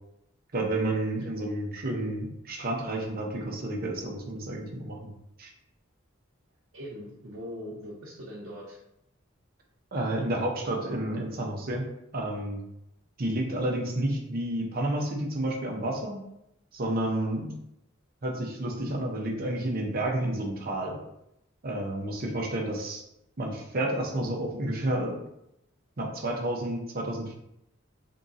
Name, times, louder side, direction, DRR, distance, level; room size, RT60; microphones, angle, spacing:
voice 1, 0.5-5.1 5.4-5.5 9.9-11.9 12.1-12.6 13.2-16.2 16.7-17.6 18.2-21.0 21.6-23.0 23.4-25.2 26.0-27.3, right 1 dB, 50° right, 0 dB, 0.8 m, -30 dB
voice 2, 6.7-8.8 17.3-17.4, equal, 80° right, -7 dB, 0.9 m, -41 dB
3.7 x 2.6 x 3.9 m, 0.81 s
head